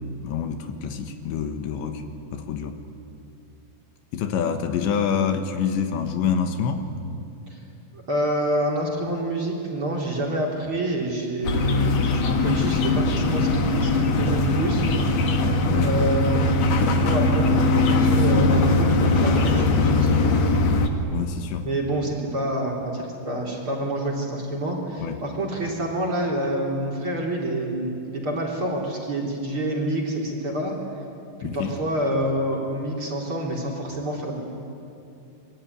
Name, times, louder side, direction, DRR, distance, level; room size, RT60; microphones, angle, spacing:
voice 1, 0.2-2.0 2.3-2.8 4.1-6.9 15.6-15.9 21.1-21.7 25.0-25.2 31.4-31.7, left 7 dB, 80° left, 6 dB, 3.6 m, -26 dB
voice 2, 7.9-14.8 15.8-20.4 21.5-30.8 31.4-34.4, right 1 dB, 30° right, -2 dB, 4.2 m, -27 dB
sound 1, 11.4-20.9, left 2 dB, 55° left, 2.1 m, -20 dB
27.0 x 22.5 x 9.7 m, 2.6 s
omnidirectional pair, 5.2 m